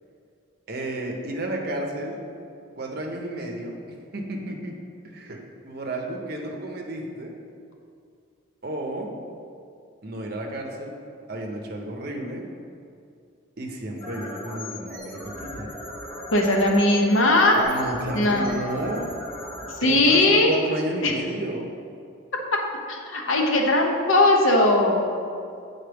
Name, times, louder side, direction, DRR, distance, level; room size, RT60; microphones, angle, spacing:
voice 1, 0.7-2.2 2.7-3.8 4.1-4.8 5.0-7.3 8.6-9.1 10.0-11.0 11.3-12.5 13.6-15.7 17.5-19.1 19.6-21.7, right 1 dB, 45° right, 1 dB, 0.7 m, -32 dB
sound 1, 14.0-20.9, left 1 dB, 10° left, 1.1 m, -38 dB
voice 2, 16.3-17.6 18.1-18.5 19.8-20.5 21.0-21.1 22.5-22.6 22.9-25.1, left 2 dB, 70° left, 1 dB, 0.8 m, -19 dB
8.0 x 4.1 x 3.4 m, 2.4 s
head